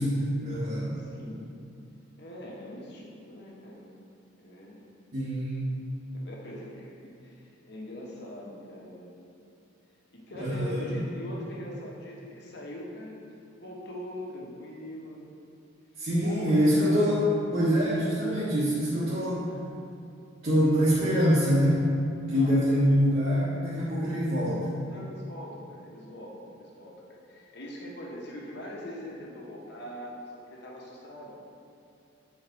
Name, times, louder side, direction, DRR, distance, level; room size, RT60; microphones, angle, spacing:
voice 1, 0.0-1.0 5.1-5.6 10.4-10.8 16.0-17.2 17.5-19.5 20.4-21.9 22.3-24.7, equal, 45° right, -10 dB, 1.4 m, -25 dB
voice 2, 1.0-1.4 2.2-3.8 4.4-4.8 6.1-9.1 10.1-13.2 13.5-15.2 16.0-17.2 22.3-22.8 23.8-23.9 24.8-30.2 30.5-31.4, left 1 dB, 60° left, -3 dB, 1.4 m, -42 dB
7.8 x 4.8 x 4.6 m, 2.5 s
head